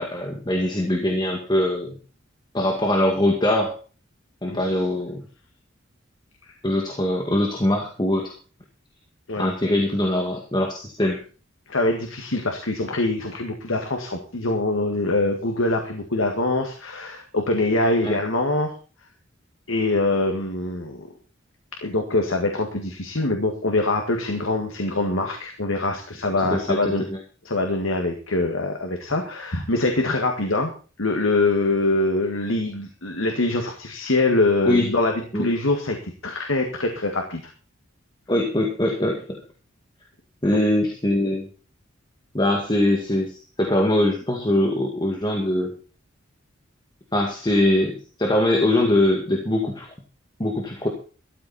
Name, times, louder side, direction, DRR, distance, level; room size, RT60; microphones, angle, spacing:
voice 1, 0.0-2.0 2.5-3.8 4.4-5.2 6.6-8.3 9.4-11.2 18.0-18.2 26.4-27.2 34.7-34.9 35.3-35.5 38.3-39.4 40.4-41.5 42.3-45.7 47.1-49.9 50.4-50.9, left 1 dB, 20° left, 2 dB, 2.0 m, -22 dB
voice 2, 11.7-18.7 19.7-21.1 21.8-27.0 27.5-30.7 31.0-37.4 40.5-40.6, left 2 dB, 85° left, 3 dB, 1.9 m, -24 dB
13.5 x 13.0 x 4.3 m, 0.37 s
head